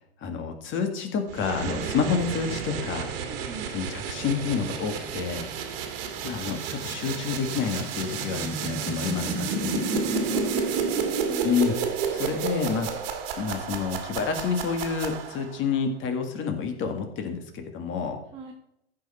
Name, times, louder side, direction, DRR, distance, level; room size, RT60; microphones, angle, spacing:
voice 1, 0.2-3.1 3.7-5.5 6.2-9.9 11.4-11.7 12.1-12.9 13.4-18.2, left 6 dB, 35° left, 5 dB, 2.0 m, -29 dB
sound 1, 1.3-15.6, right 5 dB, 60° right, 1.9 m, -31 dB
voice 2, 3.2-3.7 10.0-11.5 18.3-18.5, right 4 dB, 20° right, -2 dB, 1.9 m, -42 dB
14.5 x 5.7 x 4.3 m, 0.79 s
hypercardioid pair, 105°, 34 cm